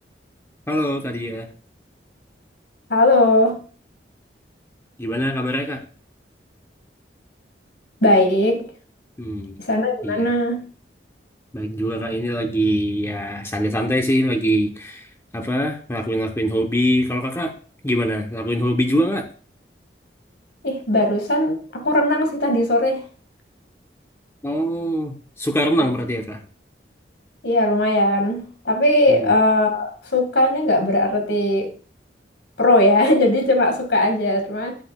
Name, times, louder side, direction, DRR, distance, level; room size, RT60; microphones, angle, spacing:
voice 1, 0.7-1.5 5.0-5.8 9.2-9.6 10.0-10.3 11.5-15.1 15.3-17.5 17.8-19.3 24.4-26.4 29.1-29.4, equal, 15° left, 4 dB, 0.8 m, -23 dB
voice 2, 2.9-3.6 8.0-8.7 9.6-10.7 20.6-23.0 27.4-31.7 32.6-34.8, left 1 dB, 75° left, 5 dB, 1.9 m, -19 dB
9.0 x 7.7 x 2.3 m, 0.40 s
head